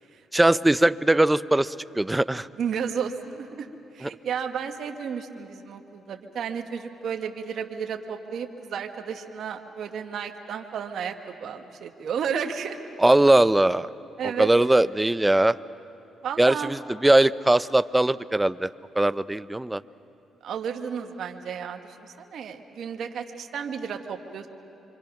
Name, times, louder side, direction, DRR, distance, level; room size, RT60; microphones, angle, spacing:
voice 1, 0.3-2.5 4.0-4.1 13.0-13.9 14.2-15.6 16.4-19.8, right 1 dB, 10° right, 16 dB, 0.5 m, -20 dB
voice 2, 2.6-3.7 3.9-12.8 14.2-14.5 16.2-16.7 20.4-24.5, right 7 dB, 65° right, 4 dB, 1.3 m, -32 dB
26.0 x 25.5 x 5.9 m, 2.8 s
cardioid pair, 90°, 0 cm